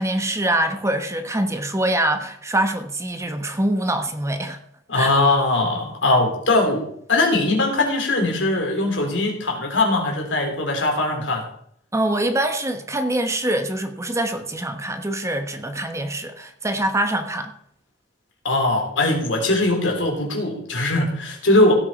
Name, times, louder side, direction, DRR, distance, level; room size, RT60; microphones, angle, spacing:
voice 1, 0.0-4.6 4.9-5.1 11.9-17.5, right 1 dB, 15° right, 7 dB, 1.2 m, -24 dB
voice 2, 4.9-11.4 18.4-21.7, left 2 dB, 80° left, 1 dB, 3.7 m, -20 dB
16.5 x 8.0 x 4.6 m, 0.68 s
head